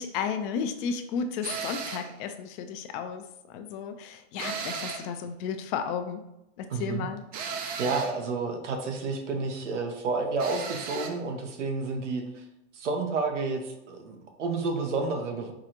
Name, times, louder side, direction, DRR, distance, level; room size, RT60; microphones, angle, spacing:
voice 1, 0.0-3.2 3.5-6.2 6.6-7.2, left 6 dB, 50° left, 8 dB, 0.6 m, -33 dB
sound 1, 1.4-2.1 4.4-5.2 7.3-8.2 10.4-11.2, right 6 dB, 25° right, 0.4 m, -35 dB
voice 2, 6.7-7.1 7.8-12.4 12.7-15.5, right 3 dB, 85° right, 3 dB, 0.9 m, -30 dB
4.8 x 2.4 x 2.8 m, 0.88 s
hypercardioid pair, 110°, 35 cm